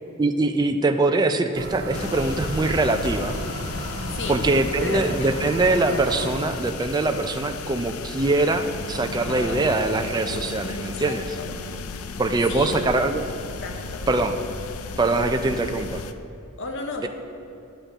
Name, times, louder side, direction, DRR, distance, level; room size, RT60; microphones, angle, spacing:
voice 1, 0.2-3.4 4.3-11.2 12.2-13.2 14.1-14.4 15.0-16.0, right 2 dB, 20° right, 6 dB, 0.4 m, -23 dB
sound 1, 1.5-6.6, right 1 dB, 55° right, 1.4 m, -33 dB
sound 2, 1.9-16.1, left 4 dB, 85° left, 0.5 m, -35 dB
voice 2, 4.1-4.4 4.8-5.3 9.1-9.6 10.7-11.6 12.5-12.9 13.6-14.1 16.6-17.1, left 3 dB, 60° left, 3 dB, 0.9 m, -34 dB
10.0 x 5.0 x 7.7 m, 2.7 s
head